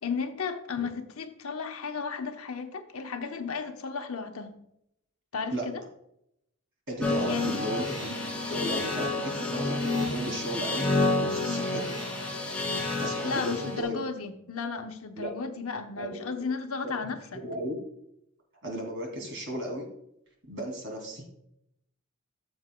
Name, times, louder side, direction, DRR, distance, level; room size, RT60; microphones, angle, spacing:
voice 1, 0.0-4.5 5.3-5.8 7.3-7.6 11.5-11.7 13.2-17.4, left 5 dB, 75° left, 6 dB, 0.9 m, -34 dB
voice 2, 6.9-8.1 8.4-10.9 11.2-11.8 13.0-14.0 15.2-15.3 15.9-16.3 17.3-17.8 18.6-19.9 20.5-21.2, equal, 55° right, 1 dB, 2.7 m, -35 dB
sound 1, 7.0-13.8, left 2 dB, 5° left, 2.4 m, -29 dB
14.0 x 7.3 x 2.2 m, 0.77 s
head